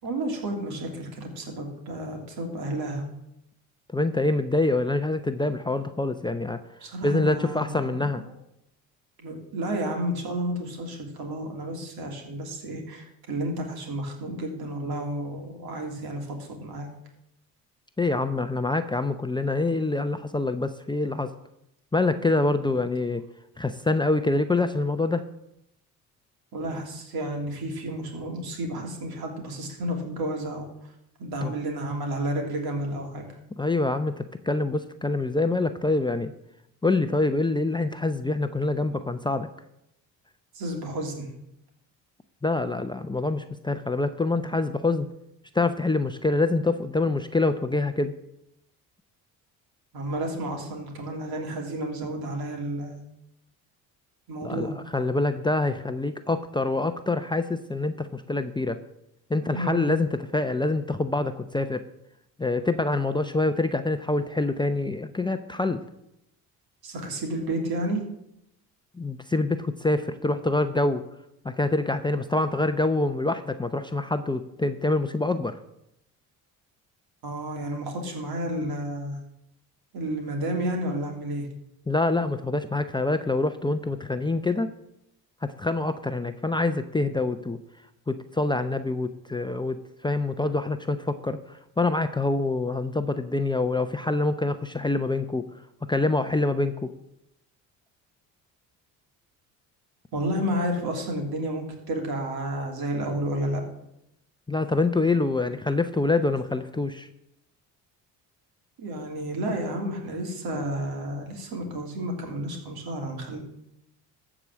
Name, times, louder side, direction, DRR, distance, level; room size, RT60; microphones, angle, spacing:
voice 1, 0.0-3.0 6.8-8.3 9.2-16.9 26.5-30.7 31.2-33.3 40.5-41.3 49.9-53.0 54.3-54.7 59.4-60.0 66.8-68.0 77.2-79.2 79.9-81.5 100.1-103.6 108.8-113.4, right 1 dB, 65° right, 2 dB, 3.4 m, -31 dB
voice 2, 3.9-6.6 7.0-8.2 18.0-21.3 21.9-23.2 23.6-25.2 31.4-31.5 33.6-36.3 36.8-39.5 42.4-45.1 45.5-48.1 54.4-58.8 59.3-61.8 62.4-65.8 69.0-71.0 71.4-75.6 81.9-84.7 85.6-87.6 88.1-89.8 90.0-95.5 95.9-96.9 104.5-107.1, left 2 dB, 10° left, 8 dB, 0.7 m, -25 dB
13.5 x 5.0 x 7.5 m, 0.81 s
supercardioid pair, 70°, 40 cm